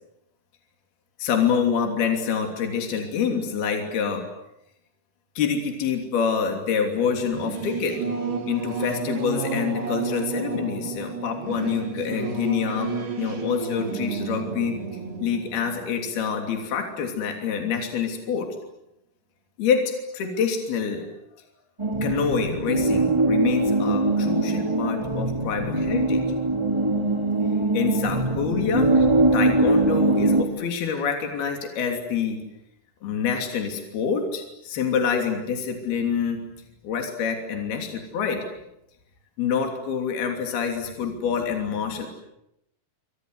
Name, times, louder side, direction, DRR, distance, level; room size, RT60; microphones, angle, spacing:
voice 1, 1.2-4.2 5.4-8.0 8.5-14.8 15.2-18.5 19.6-21.0 22.0-26.2 27.7-29.1 29.3-32.4 33.0-36.4 36.8-38.5 39.4-42.1, left 6 dB, 70° left, 4 dB, 5.0 m, -26 dB
Singing / Musical instrument, 7.0-17.1, right 4 dB, 80° right, 6.3 m, -32 dB
sound 1, 21.8-30.4, right 2 dB, 10° right, 1.6 m, -22 dB
29.0 x 25.0 x 8.1 m, 0.82 s
omnidirectional pair, 4.6 m